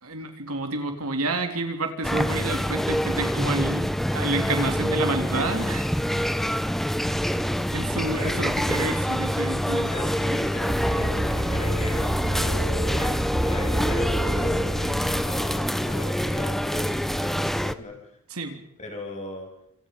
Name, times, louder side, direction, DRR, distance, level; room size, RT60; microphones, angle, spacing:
voice 1, 0.0-3.9 4.1-6.4 7.7-9.9 18.3-18.6, right 2 dB, 70° right, 5 dB, 3.5 m, -29 dB
sound 1, 2.0-17.7, equal, ahead, 0.9 m, -26 dB
voice 2, 8.2-8.7 9.8-18.2 18.8-19.5, left 1 dB, 30° left, 2 dB, 7.6 m, -39 dB
sound 2, 10.7-15.7, right 1 dB, 35° right, 4.2 m, -29 dB
27.5 x 26.5 x 5.5 m, 0.77 s
head